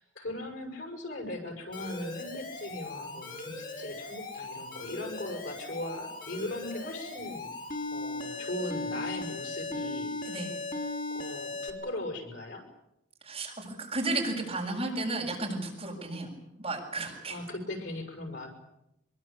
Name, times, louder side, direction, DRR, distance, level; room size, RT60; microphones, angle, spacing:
voice 1, 0.0-7.5 7.9-10.1 11.1-12.6 17.3-18.5, left 1 dB, 65° left, 4 dB, 6.4 m, -39 dB
Alarm, 1.7-11.7, left 2 dB, 45° left, 5.9 m, -38 dB
voice 2, 10.2-10.6 13.2-16.3 16.6-17.4, right 2 dB, 30° right, -1 dB, 7.7 m, -33 dB
25.0 x 23.0 x 8.7 m, 0.84 s
head